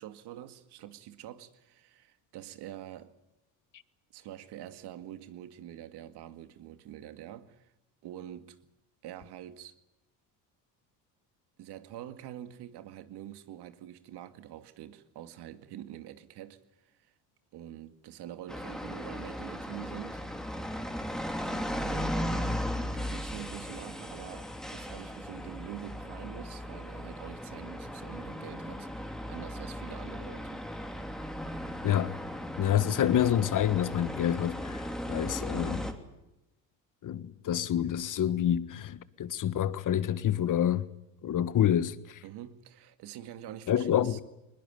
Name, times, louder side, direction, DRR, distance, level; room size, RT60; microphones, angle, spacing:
voice 1, 0.0-3.1 4.1-7.7 8.0-8.6 9.0-9.7 11.6-17.1 17.5-20.2 21.8-22.6 22.9-30.7 42.2-44.2, right 12 dB, 65° right, 2.2 m, -45 dB
sound 1, 18.5-35.9, equal, ahead, 3.1 m, -37 dB
voice 2, 31.8-32.1 32.6-35.9 37.0-40.9 41.2-42.2 43.7-44.2, left 10 dB, 45° left, 1.4 m, -28 dB
21.0 x 21.0 x 9.3 m
supercardioid pair, 90°, 43 cm